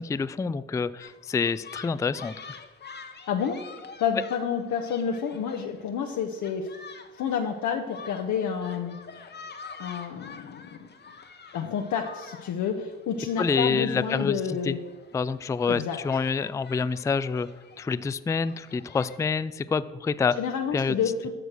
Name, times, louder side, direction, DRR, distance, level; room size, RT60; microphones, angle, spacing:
voice 1, 0.0-2.4 13.4-14.8 15.1-17.5 17.8-20.4 20.7-21.0, left 5 dB, 10° left, 15 dB, 0.3 m, -27 dB
sound 1, 1.0-19.2, left 5 dB, 35° left, 1.0 m, -47 dB
voice 2, 3.3-3.6 4.0-6.7 7.2-9.0 9.8-10.9 11.5-14.8 15.7-16.0 20.4-21.3, left 7 dB, 70° left, 3 dB, 0.9 m, -29 dB
12.0 x 6.4 x 6.2 m, 1.3 s
cardioid pair, 90°, 30 cm